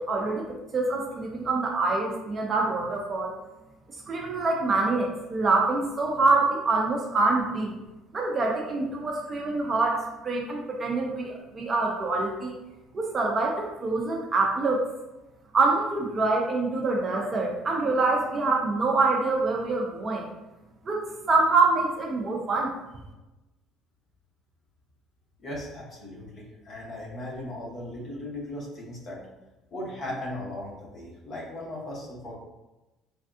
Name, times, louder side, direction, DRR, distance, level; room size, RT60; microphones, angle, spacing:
voice 1, 0.0-3.3 4.1-7.7 8.1-12.5 12.9-14.8 15.5-20.3 20.8-22.7, right 3 dB, 30° right, 0 dB, 0.4 m, -25 dB
voice 2, 25.4-29.2 29.7-32.3, left 1 dB, 40° left, -4 dB, 0.9 m, -37 dB
3.4 x 2.2 x 2.6 m, 1.0 s
cardioid pair, 145°, 0 cm